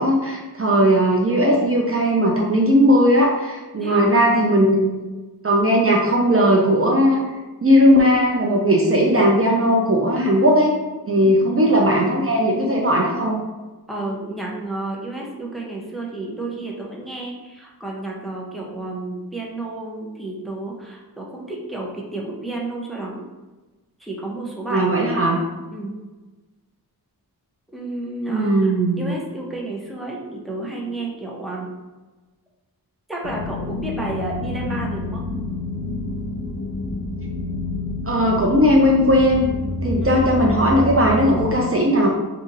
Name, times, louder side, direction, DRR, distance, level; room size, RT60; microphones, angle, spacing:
voice 1, 0.0-5.0 5.4-7.2 7.6-10.7 11.1-13.4 24.7-25.4 28.3-29.1 38.1-39.5 39.8-42.1, equal, 35° right, -2 dB, 0.5 m, -17 dB
voice 2, 3.8-4.2 11.2-12.5 13.9-23.2 24.0-24.9 25.3-25.4 25.7-26.0 27.7-28.7 29.0-31.7 33.1-35.2 40.0-40.2, right 2 dB, ahead, -3 dB, 0.6 m, -31 dB
sound 1, 33.2-41.6, left 2 dB, 70° left, 0.6 m, -28 dB
2.7 x 2.5 x 4.0 m, 1.2 s
wide cardioid pair, 95°, 38 cm